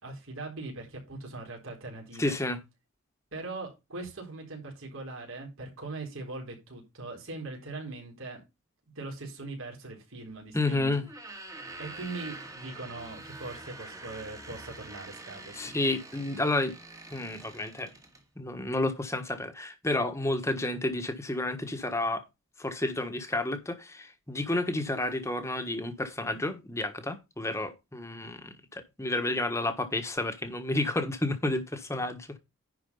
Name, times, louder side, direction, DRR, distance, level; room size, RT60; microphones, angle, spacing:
voice 1, 0.0-2.4 3.3-8.4 9.0-11.0 11.8-15.7, right 3 dB, 65° right, 4.0 m, -41 dB
voice 2, 2.2-2.6 10.5-11.1 15.5-16.7 17.1-17.9 18.4-22.2 22.6-32.4, left 2 dB, 15° left, 1.3 m, -31 dB
sound 1, 11.0-18.2, right 2 dB, 15° right, 1.5 m, -45 dB
10.5 x 4.7 x 5.4 m
head